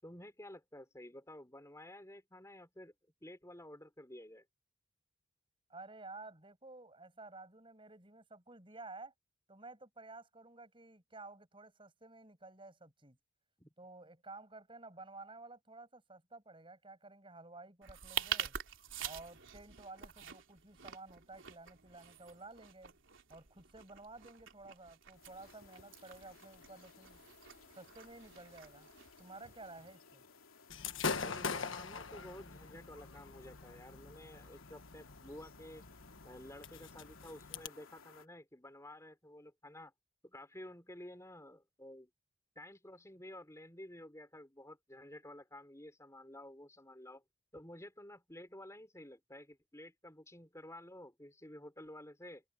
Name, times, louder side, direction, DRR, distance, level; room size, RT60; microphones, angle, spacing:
voice 1, 0.0-2.9 3.2-4.5 13.6-13.7 31.2-35.8 36.2-39.9 40.2-42.1 42.6-47.2 47.5-52.4, left 1 dB, 15° left, 5.2 m, -52 dB
voice 2, 5.7-9.1 9.5-13.2 13.8-18.6 19.0-22.9 23.3-27.2 27.8-28.9 29.2-30.2, right 3 dB, 25° right, 7.8 m, -53 dB
sound 1, 17.8-29.9, right 9 dB, 65° right, 3.4 m, -46 dB
sound 2, 25.1-38.3, left 5 dB, 85° left, 2.8 m, -61 dB
Gunshot gunfire / Fireworks, 30.7-37.7, left 5 dB, 65° left, 1.4 m, -43 dB
head